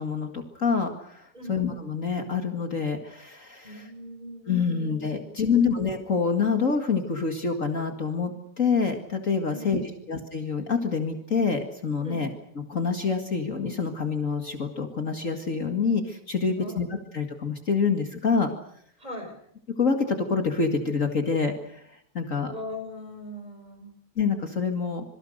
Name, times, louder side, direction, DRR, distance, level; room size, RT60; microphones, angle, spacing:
voice 1, 0.0-3.9 4.5-9.8 10.1-12.3 12.5-16.9 17.1-18.5 19.8-21.8 22.1-22.5 24.1-25.0, left 5 dB, 75° left, 5 dB, 0.7 m, -26 dB
voice 2, 3.6-5.6 9.5-10.1 12.0-12.3 16.5-16.8 19.0-19.4 22.5-23.9, left 1 dB, 10° right, 5 dB, 5.3 m, -40 dB
26.5 x 24.0 x 6.5 m, 0.70 s
omnidirectional pair, 4.9 m